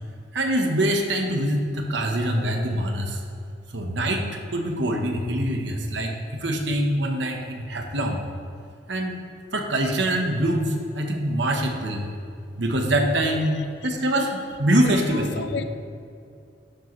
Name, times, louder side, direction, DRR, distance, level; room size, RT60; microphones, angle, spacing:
voice 1, 0.3-3.2 3.7-6.1 6.4-8.2 8.9-9.2 9.5-12.1 12.6-15.6, right 1 dB, 70° right, 1.1 m, -24 dB
voice 2, 14.7-15.6, left 5 dB, 65° left, 0.5 m, -33 dB
11.0 x 7.5 x 3.1 m
head